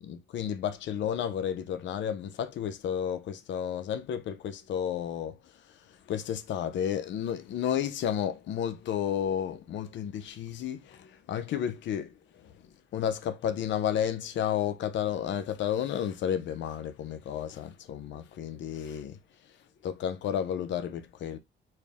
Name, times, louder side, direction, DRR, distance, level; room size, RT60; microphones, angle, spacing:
voice 1, 0.0-5.4 6.1-12.1 12.9-19.2 19.8-21.4, left 9 dB, 65° left, 0.6 m, -32 dB
4.3 x 2.1 x 3.5 m
cardioid pair, 90°, 20 cm